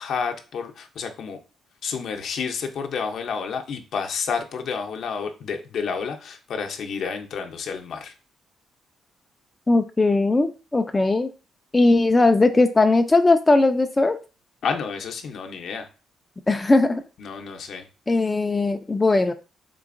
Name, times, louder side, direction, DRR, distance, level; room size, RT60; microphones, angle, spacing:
voice 1, 0.0-1.4 1.8-8.1 14.6-15.9 17.2-17.9, left 6 dB, 65° left, 0.6 m, -30 dB
voice 2, 9.7-11.3 11.7-14.2 16.5-17.0 18.1-19.3, left 2 dB, 20° left, 0.3 m, -19 dB
3.8 x 3.3 x 2.5 m
cardioid pair, 90°, 0 cm